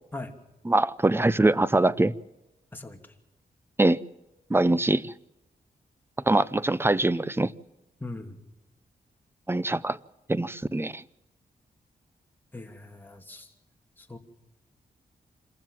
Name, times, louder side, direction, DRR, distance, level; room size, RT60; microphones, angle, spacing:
voice 1, 0.6-2.1 3.8-4.0 4.5-5.1 6.3-7.5 9.5-10.0 10.3-11.0, right 2 dB, 15° right, 0.7 m, -23 dB
voice 2, 8.0-8.4 12.5-13.5 14.1-14.2, left 2 dB, 10° left, 2.8 m, -39 dB
27.0 x 15.0 x 7.6 m
cardioid pair, 90°, 16 cm